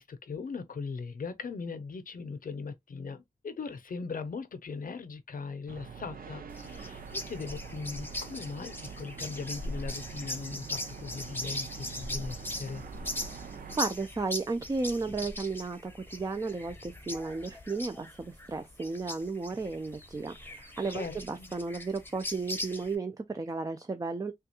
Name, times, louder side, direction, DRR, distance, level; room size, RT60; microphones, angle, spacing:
voice 1, 0.0-12.8 20.9-21.6, left 4 dB, 75° left, 0.6 m, -39 dB
sound 1, 5.7-13.8, right 7 dB, 85° right, 0.6 m, -45 dB
sound 2, 6.5-23.0, left 1 dB, 15° left, 0.8 m, -40 dB
voice 2, 13.8-24.3, right 3 dB, 25° right, 0.4 m, -34 dB
3.4 x 2.3 x 2.8 m
cardioid pair, 60°, 14 cm